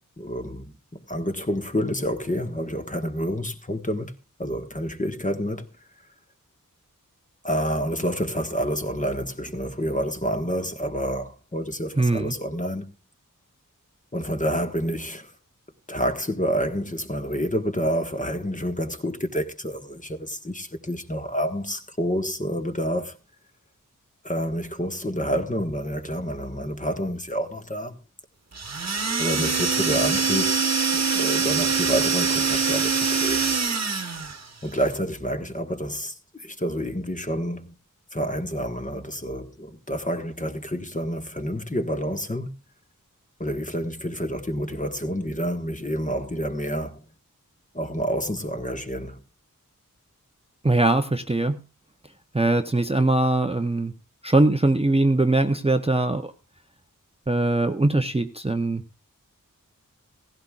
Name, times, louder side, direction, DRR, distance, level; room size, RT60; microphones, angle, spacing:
voice 1, 0.2-4.1 4.4-5.7 7.4-12.9 14.1-15.3 15.9-23.2 24.2-28.0 29.2-33.6 34.6-37.8 38.1-42.5 43.4-47.0 47.7-49.2, equal, 25° left, 1.4 m, -28 dB
voice 2, 12.0-12.3 50.6-51.6 52.3-53.9 54.2-56.3 57.3-58.8, right 2 dB, 20° right, 0.7 m, -21 dB
sound 1, 28.5-34.4, right 5 dB, 50° right, 1.2 m, -24 dB
17.0 x 15.5 x 2.4 m
wide cardioid pair, 70°, 33 cm